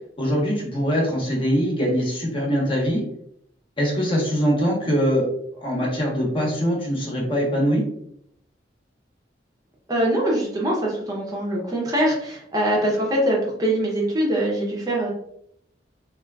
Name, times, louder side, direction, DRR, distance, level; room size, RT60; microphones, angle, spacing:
voice 1, 0.2-3.0 3.8-5.3 5.6-7.8, equal, 30° left, -3 dB, 0.9 m, -22 dB
voice 2, 9.9-15.1, right 1 dB, 20° right, -3 dB, 0.6 m, -23 dB
3.6 x 2.4 x 2.2 m, 0.70 s
head